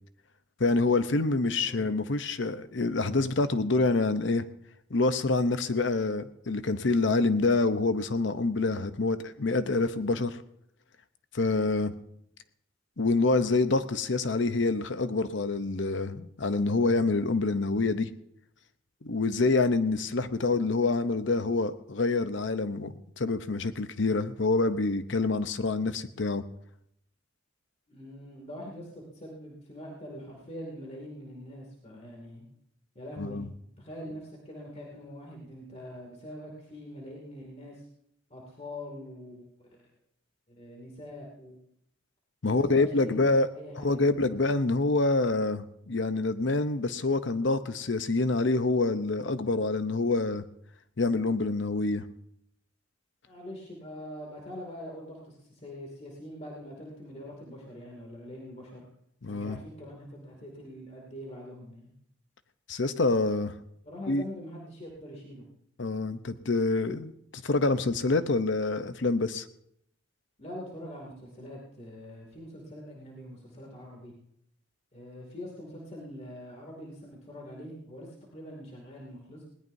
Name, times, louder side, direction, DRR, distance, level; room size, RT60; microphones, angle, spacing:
voice 1, 0.6-4.4 4.9-10.4 11.3-12.0 13.0-18.1 19.0-26.4 33.2-33.5 42.4-43.5 43.7-50.4 51.0-52.0 59.2-59.6 62.7-63.5 64.1-64.2 65.8-69.4, left 3 dB, 60° left, 11 dB, 0.8 m, -26 dB
voice 2, 1.6-2.0 27.9-32.4 32.9-33.4 33.8-37.8 38.3-39.8 40.5-41.6 42.4-44.1 53.3-58.8 59.3-61.9 63.8-65.5 70.4-74.1 74.9-79.5, equal, 35° left, -2 dB, 2.5 m, -43 dB
20.0 x 18.0 x 2.7 m, 0.75 s
head